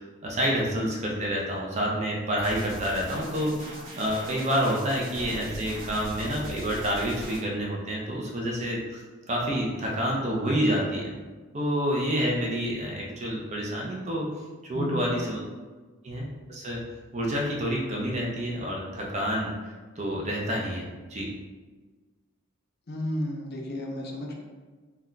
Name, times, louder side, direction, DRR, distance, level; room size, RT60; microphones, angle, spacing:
voice 1, 0.0-9.0 9.3-11.1 11.5-14.3 14.6-15.4 16.0-16.8 17.1-21.3, equal, 30° right, -2 dB, 0.4 m, -28 dB
sound 1, 2.4-7.4, equal, 80° right, 1.0 m, -40 dB
voice 2, 14.7-15.1 22.9-24.4, left 1 dB, 45° left, 0 dB, 0.4 m, -32 dB
2.2 x 2.2 x 3.7 m, 1.3 s
head